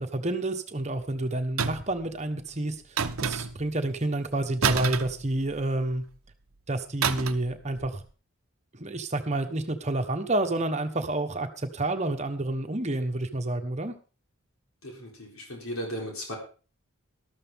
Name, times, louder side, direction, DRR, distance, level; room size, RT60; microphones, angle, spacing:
voice 1, 0.0-2.8 3.2-6.0 6.7-8.0 8.7-13.9, right 2 dB, 30° right, 7 dB, 1.2 m, -29 dB
sound 1, 1.6-2.0 3.0-3.7 4.6-5.8 7.0-7.5 7.8-8.0, right 6 dB, 75° right, 0.8 m, -29 dB
voice 2, 14.8-16.4, equal, 80° left, 0 dB, 3.9 m, -36 dB
13.5 x 12.5 x 3.6 m, 0.36 s
head